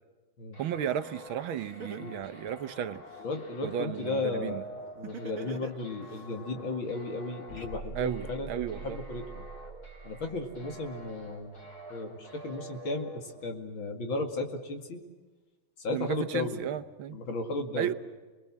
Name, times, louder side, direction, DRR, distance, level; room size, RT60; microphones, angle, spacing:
sound 1, 0.5-13.5, equal, 45° left, 4.3 m, -48 dB
voice 1, 0.6-3.0 3.6-4.6 8.0-9.0 15.9-17.2 17.8-17.9, right 9 dB, 75° right, 11 dB, 1.7 m, -34 dB
Laughter, 1.3-1.4 1.8-3.3 5.0-6.2, right 4 dB, 45° right, 1.5 m, -41 dB
voice 2, 3.2-4.6 5.0-9.5 10.0-11.5 11.9-15.0 15.8-16.6 17.1-17.9, left 3 dB, 70° left, 4 dB, 3.0 m, -35 dB
sound 2, 7.5-11.6, right 3 dB, 30° left, 2.4 m, -45 dB
29.5 x 21.5 x 7.4 m, 1.3 s
omnidirectional pair, 2.3 m